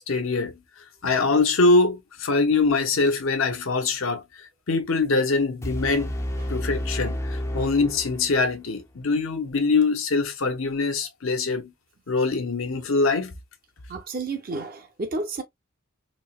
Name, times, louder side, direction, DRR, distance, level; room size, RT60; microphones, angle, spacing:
voice 1, 0.1-0.6 1.0-4.2 4.7-6.2 6.5-11.7 12.1-13.3, left 3 dB, 85° left, 0.8 m, -23 dB
sound 1, 5.6-8.6, equal, 15° left, 0.4 m, -31 dB
voice 2, 13.9-15.4, right 3 dB, 45° right, 0.6 m, -31 dB
4.3 x 2.1 x 2.4 m
head